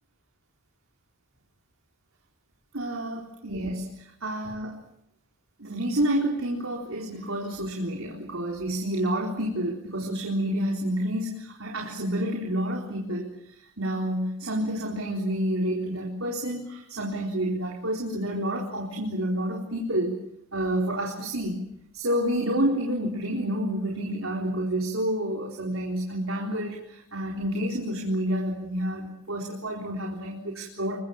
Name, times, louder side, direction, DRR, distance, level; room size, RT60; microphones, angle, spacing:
voice 1, 2.7-3.9 4.2-4.7 5.6-20.2 20.5-21.6 21.9-31.0, right 1 dB, 70° right, -1 dB, 4.1 m, -29 dB
28.0 x 23.5 x 7.3 m, 0.78 s
head